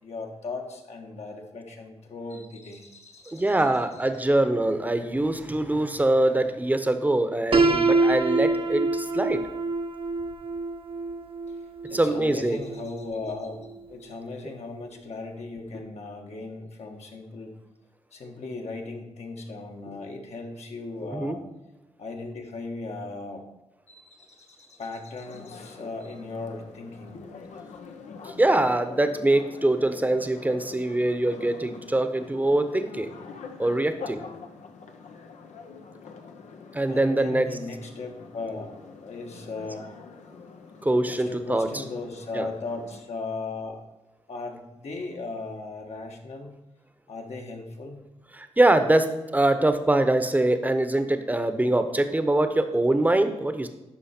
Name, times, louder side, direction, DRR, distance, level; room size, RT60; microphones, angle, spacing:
voice 1, 0.0-3.6 4.1-4.2 11.5-11.6 11.9-17.5 18.1-21.4 22.0-23.4 23.9-27.2 27.7-27.8 34.3-34.4 36.9-39.9 41.1-43.8 44.3-46.5 47.1-48.0, left 3 dB, 65° left, 2 dB, 1.5 m, -37 dB
voice 2, 3.3-9.4 11.9-12.6 21.1-21.4 28.2-33.1 33.6-34.2 36.7-37.5 40.8-41.7 42.3-42.5 48.3-53.7, right 1 dB, 15° right, 9 dB, 0.9 m, -23 dB
Piano, 7.5-13.4, right 3 dB, 50° right, 0.8 m, -26 dB
sound 1, 25.2-43.0, left 5 dB, 85° left, 0.9 m, -45 dB
12.0 x 4.6 x 4.4 m, 1.0 s
cardioid pair, 60°, 12 cm